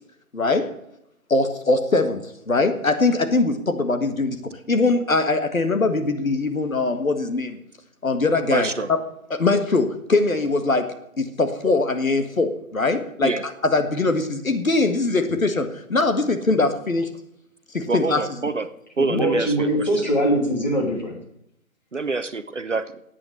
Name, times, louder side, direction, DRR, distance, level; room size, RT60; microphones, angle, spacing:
voice 1, 0.3-0.7 1.3-4.4 4.7-7.6 8.0-9.0 9.3-13.3 13.6-17.1 17.7-18.2 19.1-19.2, left 3 dB, 65° left, 8 dB, 1.7 m, -22 dB
voice 2, 8.5-8.9 13.2-13.4 17.9-18.7 19.0-19.7 21.9-22.9, right 3 dB, 55° right, 12 dB, 0.9 m, -25 dB
voice 3, 19.1-21.2, right 1 dB, 30° left, 0 dB, 2.9 m, -22 dB
11.5 x 8.7 x 8.2 m, 0.78 s
figure-of-eight pair, 180°, 44 cm